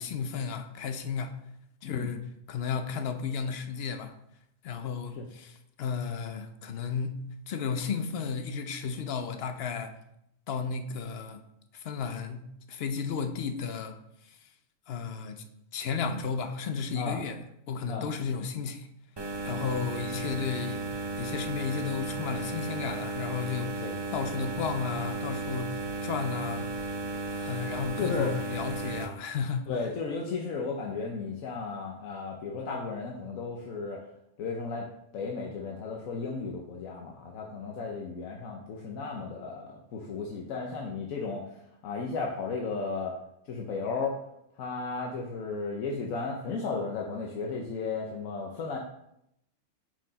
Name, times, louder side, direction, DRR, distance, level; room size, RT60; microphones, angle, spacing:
voice 1, 0.0-1.4 1.8-4.1 4.6-10.0 10.5-11.4 11.7-14.0 14.2-14.4 14.9-15.4 15.7-17.4 17.7-18.9 19.4-20.9 21.2-26.7 27.3-29.7, left 6 dB, 60° left, 8 dB, 0.8 m, -33 dB
sound 1, 19.2-29.1, right 3 dB, 30° right, 0.5 m, -35 dB
voice 2, 28.0-28.4 29.7-34.0 34.4-34.9 35.1-43.1 43.5-44.2 44.6-48.8, left 4 dB, 90° left, 0 dB, 1.2 m, -34 dB
6.0 x 4.8 x 4.0 m, 0.77 s
omnidirectional pair, 1.4 m